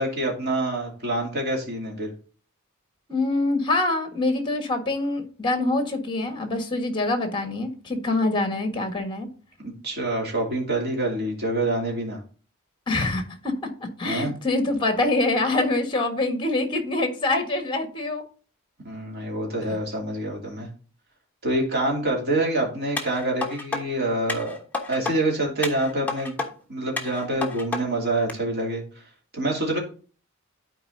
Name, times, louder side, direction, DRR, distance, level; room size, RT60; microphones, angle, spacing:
voice 1, 0.0-2.1 9.8-12.2 14.0-14.3 18.8-20.7 21.4-24.6 24.9-26.4 26.7-28.8 29.3-29.8, right 1 dB, 50° right, 2.8 m, -26 dB
voice 2, 3.1-9.3 12.9-13.5 14.0-18.2 19.7-19.8, left 2 dB, 25° left, 1.5 m, -25 dB
sound 1, 23.0-23.8 24.3-25.2 25.6-26.5 27.0-27.8 28.3-28.4, left 3 dB, 10° left, 1.1 m, -30 dB
12.0 x 4.7 x 2.7 m
head